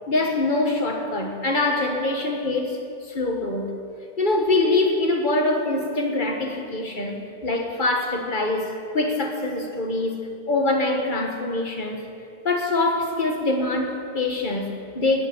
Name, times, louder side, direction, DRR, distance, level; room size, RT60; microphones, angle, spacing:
voice 1, 0.1-3.7 4.2-12.1 12.4-15.3, left 2 dB, 50° left, 2 dB, 1.7 m, -24 dB
17.5 x 6.2 x 10.0 m, 2.5 s
omnidirectional pair, 1.0 m